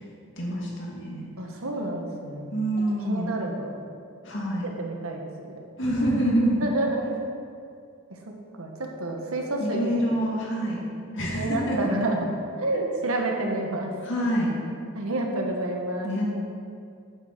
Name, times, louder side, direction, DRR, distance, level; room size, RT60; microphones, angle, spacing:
voice 1, 0.4-1.2 2.5-3.3 4.2-4.7 5.8-6.7 9.6-10.8 11.1-11.8 14.0-14.5 16.0-16.3, right 1 dB, 55° left, -3 dB, 2.4 m, -26 dB
voice 2, 1.4-2.5 3.1-3.8 4.8-5.5 6.6-7.0 8.5-10.0 11.3-13.9 14.9-16.1, right 2 dB, 85° right, 1 dB, 1.5 m, -29 dB
8.5 x 8.2 x 6.1 m, 2.4 s
head